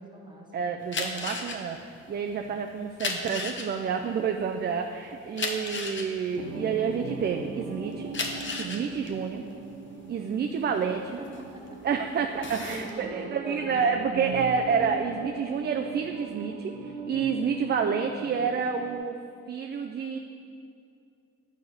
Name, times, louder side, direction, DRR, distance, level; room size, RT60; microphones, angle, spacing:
voice 1, 0.0-0.8 2.4-2.6 11.2-11.8 12.3-13.8, right 2 dB, 15° right, -1 dB, 1.2 m, -42 dB
voice 2, 0.5-8.1 8.6-9.4 10.1-11.2 11.8-19.2 19.5-20.2, right 6 dB, 35° right, 4 dB, 0.4 m, -29 dB
sound 1, 0.8-7.4 7.9-11.8 12.2-12.9, left 3 dB, 40° left, 0.9 m, -34 dB
sound 2, 6.3-19.0, right 4 dB, 85° right, 0.8 m, -40 dB
9.1 x 4.8 x 4.1 m, 2.5 s
cardioid pair, 90°, 30 cm